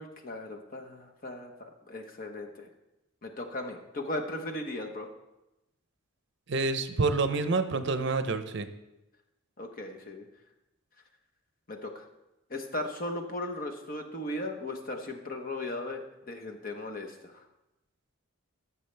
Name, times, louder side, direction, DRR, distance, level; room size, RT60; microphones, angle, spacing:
voice 1, 0.0-2.7 3.2-5.1 9.6-10.3 11.7-12.1 12.5-16.0 16.3-17.5, left 1 dB, 40° left, 3 dB, 1.0 m, -37 dB
voice 2, 6.5-8.7, right 3 dB, 55° right, 10 dB, 0.6 m, -28 dB
16.0 x 7.1 x 3.3 m, 0.95 s
head